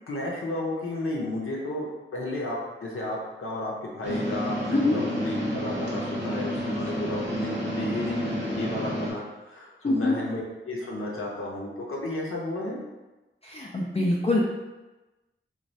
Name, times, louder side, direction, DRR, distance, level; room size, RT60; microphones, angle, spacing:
voice 1, 0.1-12.8, left 1 dB, 85° left, -3 dB, 0.6 m, -32 dB
sound 1, 4.0-9.1, equal, 60° right, 0.7 m, -30 dB
voice 2, 13.4-14.4, left 2 dB, 30° left, -3 dB, 0.4 m, -24 dB
3.1 x 2.2 x 2.6 m, 1.1 s
wide cardioid pair, 65°, 21 cm